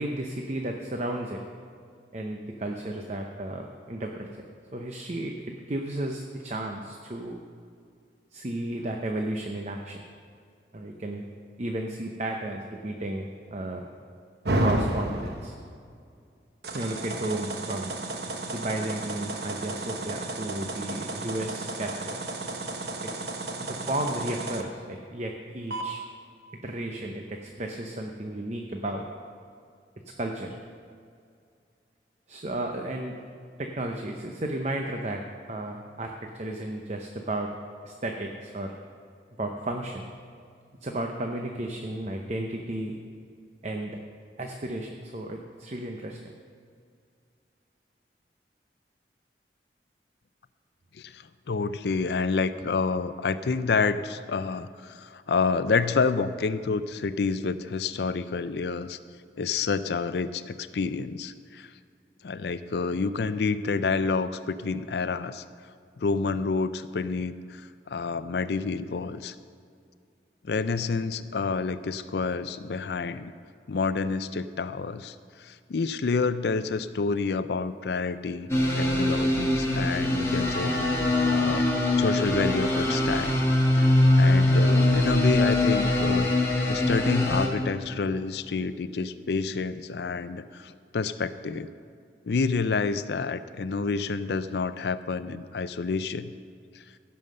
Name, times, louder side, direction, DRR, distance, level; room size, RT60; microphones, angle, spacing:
voice 1, 0.0-1.4 2.1-4.3 4.7-7.4 8.3-10.0 10.7-11.3 11.6-13.9 14.6-15.5 16.7-17.9 18.5-22.2 23.0-23.1 23.7-26.0 26.6-29.1 30.2-30.6 32.3-33.2 33.6-37.5 37.8-38.7 39.4-40.0 40.8-43.0 43.6-44.0 44.4-46.3, right 1 dB, 40° right, 3 dB, 0.7 m, -33 dB
sound 1, 14.4-15.6 16.6-24.6 25.7-25.8, right 2 dB, 65° right, 1.0 m, -32 dB
voice 2, 50.9-59.0 59.4-61.7 62.2-65.4 66.0-69.3 70.4-73.3 73.7-78.5 78.8-83.4 83.7-83.9 84.1-91.7 92.2-96.3 96.7-96.8, left 4 dB, 70° left, 13 dB, 0.5 m, -29 dB
sound 2, 78.5-87.5, left 1 dB, 15° left, 1.5 m, -22 dB
16.0 x 5.6 x 6.6 m, 2.3 s
head